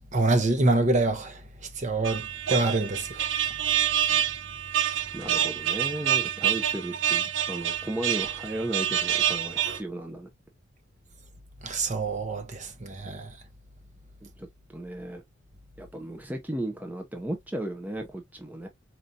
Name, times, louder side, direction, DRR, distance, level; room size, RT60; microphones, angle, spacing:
voice 1, 0.1-1.4 1.8-3.2 11.6-13.3, right 2 dB, 40° right, 0.7 m, -26 dB
sound 1, 2.0-9.8, right 10 dB, 80° right, 0.6 m, -27 dB
voice 2, 5.1-10.3 14.2-15.2 15.8-18.7, right 1 dB, 10° right, 0.5 m, -35 dB
4.4 x 2.7 x 2.5 m
head